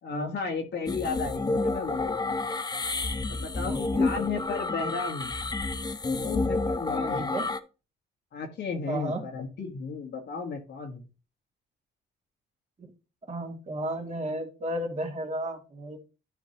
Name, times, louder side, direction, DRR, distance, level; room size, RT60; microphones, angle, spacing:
voice 1, 0.0-2.4 3.3-5.3 6.1-7.3 8.3-11.0, left 4 dB, 60° left, 2 dB, 1.6 m, -34 dB
sound 1, 0.9-7.6, left 3 dB, 20° left, 0.7 m, -29 dB
voice 2, 3.7-4.0 7.1-7.5 8.9-9.2 13.3-16.0, right 1 dB, 35° right, 0 dB, 2.4 m, -33 dB
12.0 x 5.0 x 3.0 m, 0.32 s
cardioid pair, 90°, 20 cm